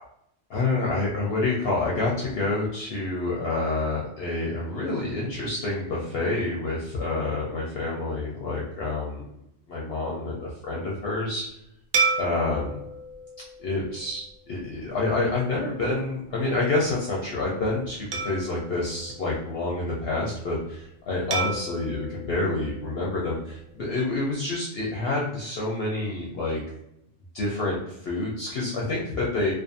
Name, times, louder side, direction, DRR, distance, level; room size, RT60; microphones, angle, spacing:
voice 1, 0.5-9.2 9.7-11.4 12.2-12.7 13.6-26.6 27.3-29.5, left 2 dB, 60° left, -4 dB, 0.7 m, -28 dB
sound 1, 11.9-14.6 15.2-15.4 18.1-19.9 21.3-23.6, right 4 dB, 60° right, 0.5 m, -32 dB
2.5 x 2.4 x 2.5 m, 0.80 s
omnidirectional pair, 1.3 m